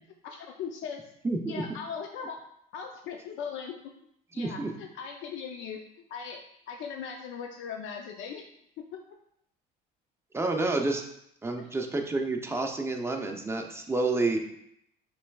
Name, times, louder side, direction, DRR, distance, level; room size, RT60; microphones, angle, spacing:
voice 1, 0.2-1.0 1.5-2.4 2.7-3.9 4.3-5.8 6.1-8.5 8.8-9.0 11.7-11.8, left 6 dB, 70° left, 3 dB, 0.5 m, -39 dB
voice 2, 1.2-1.6 4.3-4.7 10.3-11.0 11.4-14.4, right 2 dB, 10° right, 3 dB, 0.6 m, -29 dB
5.8 x 3.3 x 2.3 m, 0.74 s
supercardioid pair, 95°, 21 cm